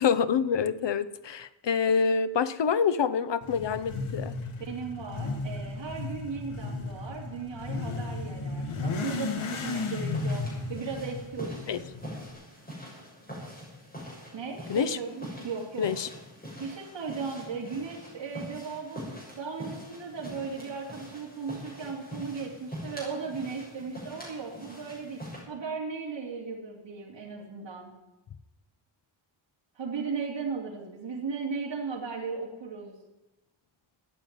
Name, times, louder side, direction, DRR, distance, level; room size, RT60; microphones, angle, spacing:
voice 1, 0.0-4.3 11.7-11.8 14.7-15.0 15.8-16.1, left 6 dB, 60° left, 13 dB, 0.9 m, -26 dB
Motorcycle / Accelerating revving vroom, 3.4-12.3, left 3 dB, 75° left, 2.3 m, -34 dB
voice 2, 4.6-11.8 14.3-15.9 16.6-19.0 19.3-25.2 25.5-27.9 29.7-32.9, right 5 dB, 60° right, -3 dB, 3.0 m, -36 dB
sound 1, 9.6-25.4, equal, 20° left, 6.9 m, -44 dB
14.5 x 9.2 x 9.5 m, 1.0 s
wide cardioid pair, 170°, 49 cm